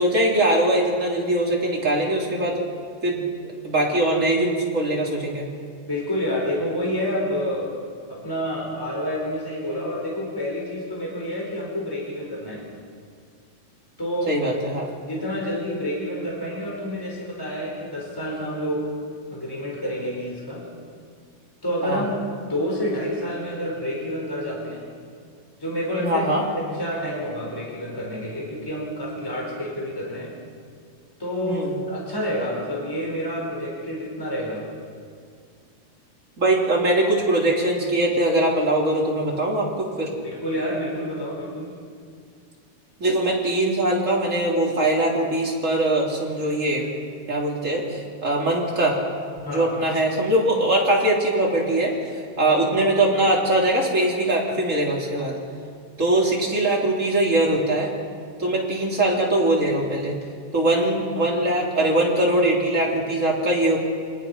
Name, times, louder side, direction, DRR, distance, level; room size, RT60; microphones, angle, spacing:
voice 1, 0.0-2.6 3.0-3.2 3.6-5.5 14.3-14.9 21.8-22.0 26.0-26.4 31.4-31.7 36.4-40.1 43.0-46.8 47.3-49.0 49.4-51.9 52.4-55.4 56.0-57.9 58.4-60.1 60.5-63.8, right 1 dB, 20° right, -2 dB, 3.0 m, -21 dB
voice 2, 5.8-7.7 8.1-12.6 14.0-14.3 15.1-18.9 19.3-20.6 21.6-22.1 22.5-24.8 25.6-30.3 31.2-34.6 40.1-41.7 49.4-49.7, equal, 5° left, -3 dB, 4.6 m, -28 dB
25.0 x 20.0 x 5.7 m, 2.2 s
omnidirectional pair, 4.3 m